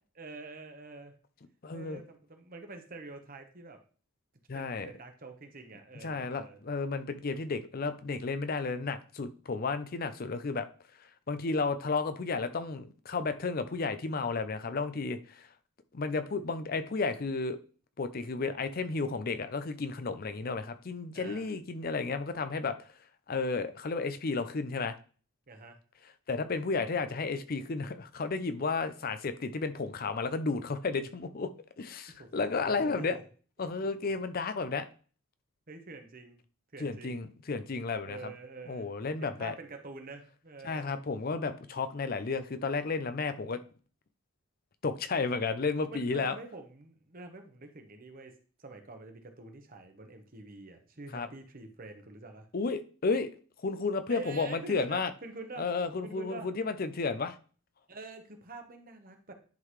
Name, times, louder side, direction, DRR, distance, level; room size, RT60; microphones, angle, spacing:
voice 1, 0.2-1.1 1.7-3.8 4.5-6.6 21.1-21.5 25.5-25.8 32.1-33.2 35.7-36.4 36.7-37.2 38.1-38.9 39.2-40.9 45.9-52.5 54.1-55.7 56.0-56.5 57.9-59.3, right 3 dB, 45° right, 5 dB, 1.1 m, -46 dB
voice 2, 1.6-2.0 4.5-4.9 6.0-10.7 11.3-15.5 15.9-17.6 18.0-22.7 23.3-25.0 26.3-31.5 31.8-33.2 33.6-34.9 36.8-38.3 38.7-39.6 40.6-43.6 44.8-46.4 51.1-51.3 52.5-53.3 53.6-55.1 55.6-57.4, left 4 dB, 45° left, 11 dB, 0.5 m, -32 dB
10.5 x 3.9 x 3.2 m, 0.39 s
head